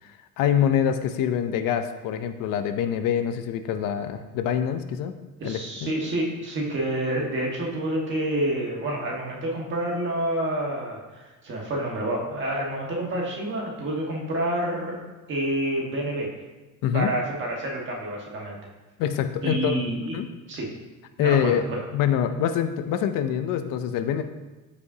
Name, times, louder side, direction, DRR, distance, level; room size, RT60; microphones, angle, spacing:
voice 1, 0.4-5.1 5.4-5.9 16.8-17.1 19.0-19.8 20.1-20.3 21.2-24.2, left 9 dB, 75° left, 9 dB, 0.6 m, -25 dB
voice 2, 5.4-16.3 16.9-18.6 19.4-20.2 20.5-20.7 21.2-21.5, right 1 dB, 35° right, -2 dB, 1.5 m, -28 dB
12.5 x 5.2 x 2.8 m, 1.2 s
cardioid pair, 175°, 33 cm